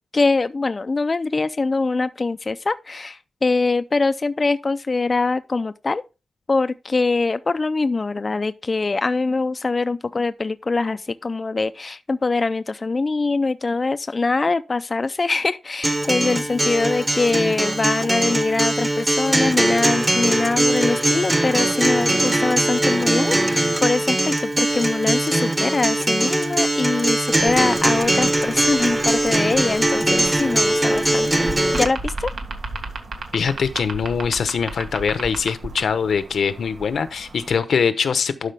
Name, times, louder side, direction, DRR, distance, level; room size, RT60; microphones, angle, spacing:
voice 1, 0.1-6.0 6.5-31.5 31.7-32.3, left 3 dB, 35° left, 0.4 m, -23 dB
Acoustic guitar, 15.8-31.8, right 1 dB, 15° right, 1.0 m, -21 dB
sound 1, 27.3-37.6, right 3 dB, 75° right, 1.7 m, -35 dB
voice 2, 33.3-38.5, left 6 dB, 85° left, 0.9 m, -23 dB
12.0 x 4.9 x 3.4 m
wide cardioid pair, 120°, 0 cm